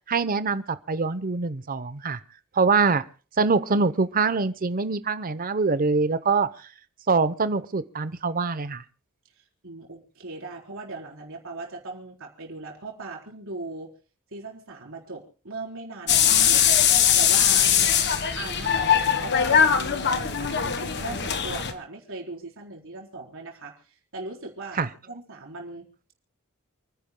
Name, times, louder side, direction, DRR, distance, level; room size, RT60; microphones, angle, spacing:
voice 1, 0.1-2.2 2.6-3.0 3.4-6.5 7.1-8.8 24.8-24.9, right 4 dB, 40° right, 14 dB, 0.8 m, -24 dB
voice 2, 9.6-13.9 14.3-16.7 17.1-17.7 18.3-25.9, right 3 dB, 65° right, -1 dB, 4.1 m, -39 dB
sound 1, 16.1-21.7, left 8 dB, 55° left, 1.4 m, -21 dB
29.0 x 10.5 x 2.2 m, 0.38 s
head